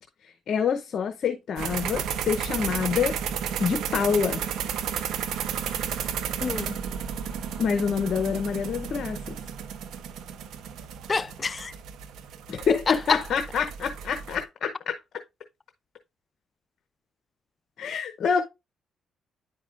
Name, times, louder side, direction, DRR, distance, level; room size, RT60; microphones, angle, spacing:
voice 1, 0.5-3.1 3.6-4.4 7.6-9.4 12.5-15.0 17.8-18.4, left 6 dB, 60° left, 0.8 m, -26 dB
sound 1, 1.6-14.4, right 8 dB, 85° right, 0.8 m, -33 dB
voice 2, 6.4-6.8 11.1-11.7 12.7-13.2, left 4 dB, 35° left, 0.4 m, -28 dB
9.9 x 4.8 x 2.5 m
cardioid pair, 90°, 0 cm